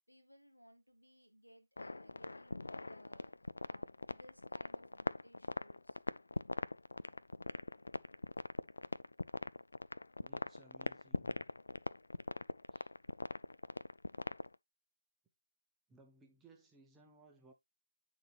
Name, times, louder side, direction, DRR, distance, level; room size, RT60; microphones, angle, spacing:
voice 1, 0.1-3.4 3.7-6.0, equal, 90° left, 1.9 m, -62 dB
sound 1, 1.8-14.6, left 2 dB, 65° left, 0.3 m, -41 dB
voice 2, 10.2-11.5 12.7-12.9 15.9-17.5, right 2 dB, 5° right, 0.7 m, -63 dB
8.9 x 3.9 x 3.0 m
figure-of-eight pair, 150°, 0 cm